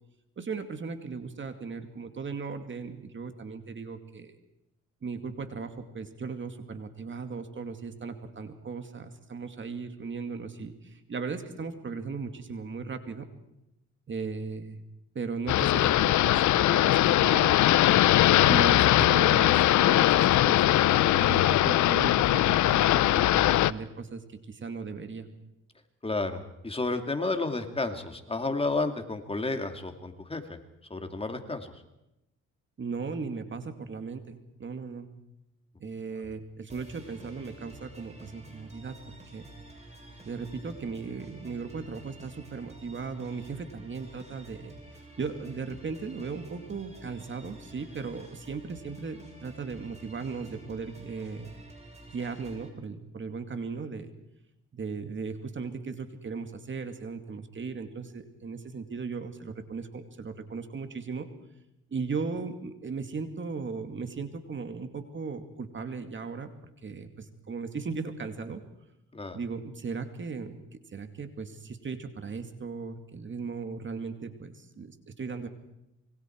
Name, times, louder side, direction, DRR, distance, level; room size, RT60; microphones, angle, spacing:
voice 1, 0.4-4.3 5.0-13.3 14.1-14.8 15.1-17.6 18.4-24.2 24.5-25.3 32.8-35.1 35.8-39.5 40.2-44.7 45.2-51.5 52.1-54.1 54.7-61.3 61.9-66.5 66.8-68.6 69.3-75.5, right 5 dB, 40° right, 7 dB, 2.4 m, -37 dB
sound 1, 15.5-23.7, left 14 dB, 75° left, 0.7 m, -21 dB
voice 2, 26.0-30.6 30.9-31.7 69.1-69.4, left 3 dB, 20° left, 6 dB, 2.6 m, -31 dB
sound 2, 36.7-52.7, right 2 dB, 20° right, 7.3 m, -49 dB
26.5 x 23.0 x 4.7 m, 0.89 s
cardioid pair, 90°, 30 cm